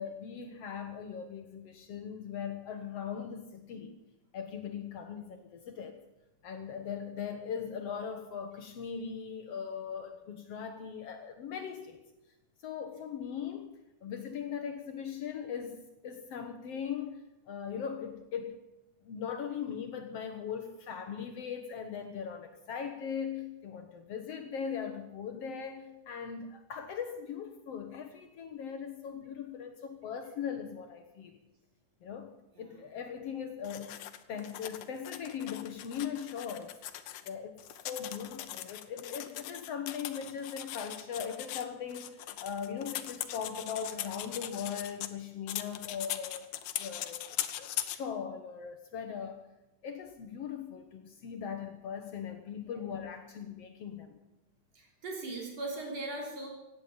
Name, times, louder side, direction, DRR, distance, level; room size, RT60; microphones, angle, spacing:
voice 1, 0.0-4.0 4.3-6.0 6.4-12.0 12.6-13.7 14.0-18.6 19.0-31.4 32.0-32.3 32.6-34.0 34.3-36.8 37.3-37.6 37.9-46.4 46.8-49.4 49.8-54.2, left 7 dB, 65° left, 7 dB, 1.9 m, -39 dB
sound 1, 33.6-37.3 37.6-45.1 45.5-48.0, left 12 dB, 80° left, 2.2 m, -40 dB
voice 2, 54.7-56.5, right 2 dB, 55° right, -1 dB, 4.9 m, -39 dB
16.5 x 9.5 x 8.8 m, 0.95 s
omnidirectional pair, 3.5 m